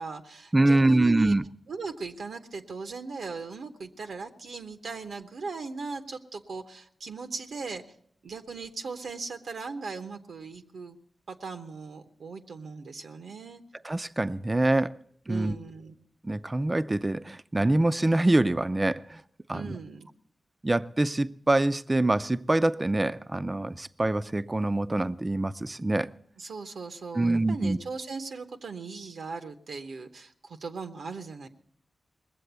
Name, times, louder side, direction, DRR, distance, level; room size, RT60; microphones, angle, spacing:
voice 1, 0.0-1.4 1.7-7.8 8.2-11.0 11.3-13.6 15.3-15.9 19.5-20.1 26.4-31.5, right 4 dB, 80° right, 0.9 m, -38 dB
voice 2, 0.5-1.5 13.8-15.0 15.3-15.6 16.2-19.2 19.5-19.8 20.6-26.1 27.1-27.8, right 2 dB, 25° right, 0.5 m, -25 dB
20.0 x 7.7 x 8.1 m
cardioid pair, 50°, 0 cm